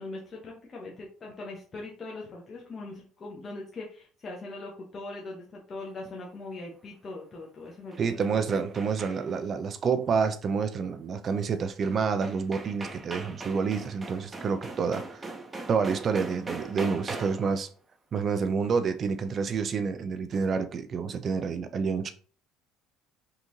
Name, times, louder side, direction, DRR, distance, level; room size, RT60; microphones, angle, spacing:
voice 1, 0.0-8.1, left 2 dB, 40° left, 1.0 m, -41 dB
sound 1, 7.7-9.5 11.8-11.9 12.2-17.6, right 3 dB, 25° right, 0.8 m, -40 dB
voice 2, 8.0-15.2 15.7-17.7 18.1-22.1, right 5 dB, 45° right, 0.4 m, -28 dB
3.7 x 2.5 x 3.0 m
hypercardioid pair, 70°, 0 cm